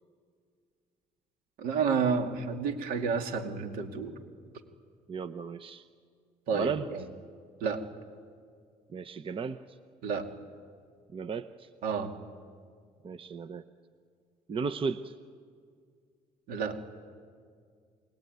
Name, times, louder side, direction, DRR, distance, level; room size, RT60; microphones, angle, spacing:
voice 1, 1.6-4.1 6.5-7.0 7.6-7.8 10.0-10.3 11.8-12.1 16.5-16.8, right 5 dB, 80° right, 5 dB, 2.6 m, -30 dB
voice 2, 5.1-5.8 6.6-6.9 8.9-9.6 11.1-11.7 13.0-13.6 14.5-15.1, right 5 dB, 40° right, 11 dB, 0.8 m, -34 dB
29.0 x 21.0 x 9.5 m, 2.1 s
cardioid pair, 90°, 15 cm